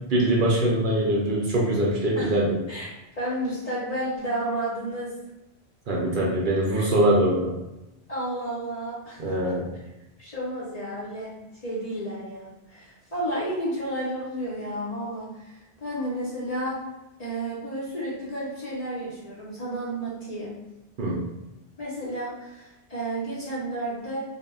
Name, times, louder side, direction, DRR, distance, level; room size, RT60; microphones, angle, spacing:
voice 1, 0.1-2.6 5.9-7.6 9.2-9.7 21.0-21.3, right 1 dB, 60° right, -3 dB, 0.6 m, -23 dB
voice 2, 3.2-5.1 8.1-9.2 10.2-11.3 11.6-15.5 15.8-16.8 17.2-20.6 21.8-24.2, right 1 dB, 45° left, -7 dB, 0.6 m, -31 dB
2.1 x 2.1 x 3.5 m, 0.93 s
omnidirectional pair, 1.2 m